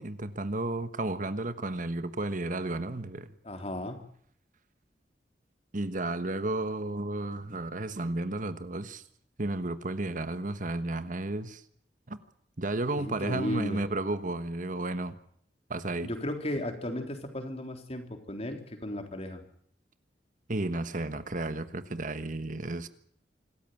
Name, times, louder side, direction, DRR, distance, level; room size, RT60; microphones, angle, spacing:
voice 1, 0.0-3.3 5.7-9.0 9.4-11.6 12.1-12.2 12.6-15.2 15.7-16.1 20.5-22.9, right 2 dB, 50° right, 1.3 m, -33 dB
voice 2, 3.4-4.0 13.0-13.8 16.0-19.4, left 1 dB, 35° left, 3.7 m, -35 dB
26.0 x 14.5 x 9.4 m
head